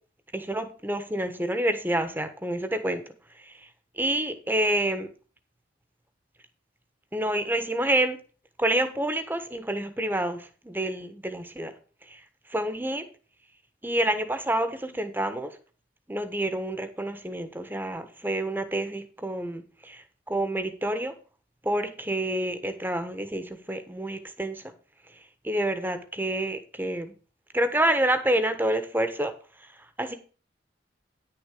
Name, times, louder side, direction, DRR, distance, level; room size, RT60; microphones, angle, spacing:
voice 1, 0.3-3.0 3.4-3.7 4.0-5.1 7.1-8.2 8.6-11.7 12.1-12.2 12.5-13.0 13.8-15.6 16.1-21.1 21.6-24.6 25.4-27.1 27.5-29.3 30.0-30.1, right 1 dB, 10° right, 9 dB, 1.2 m, -28 dB
10.0 x 6.8 x 4.9 m, 0.37 s
head